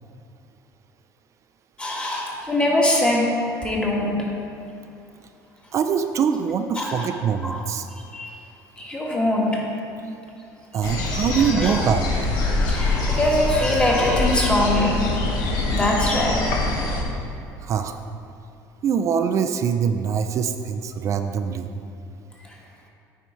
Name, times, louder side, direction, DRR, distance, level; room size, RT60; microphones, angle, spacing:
voice 1, 1.8-3.3 3.6-4.2 6.7-7.1 7.4-7.6 8.1-8.3 8.8-9.6 10.7-10.9 11.5-11.8 12.5-15.1 15.7-16.4, left 1 dB, 15° left, -3 dB, 1.4 m, -22 dB
voice 2, 5.7-7.9 10.7-12.1 17.6-18.0 18.8-21.7, right 7 dB, 45° right, 7 dB, 0.4 m, -23 dB
sound 1, 10.8-17.0, left 2 dB, 65° left, 1.2 m, -24 dB
9.1 x 4.7 x 4.4 m, 2.6 s
cardioid pair, 120°, 7 cm